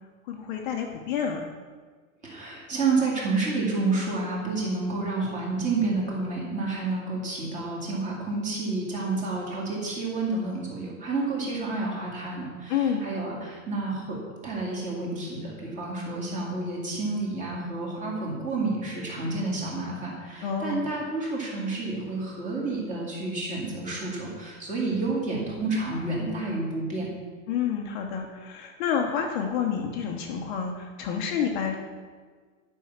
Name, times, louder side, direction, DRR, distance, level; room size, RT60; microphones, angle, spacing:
voice 1, 0.3-1.4 12.7-13.1 20.4-20.8 27.5-31.7, left 7 dB, 35° left, 2 dB, 0.9 m, -29 dB
voice 2, 2.2-14.2 14.4-27.1, right 3 dB, 20° right, -3 dB, 2.2 m, -29 dB
10.5 x 5.5 x 7.2 m, 1.5 s
supercardioid pair, 175°, 40 cm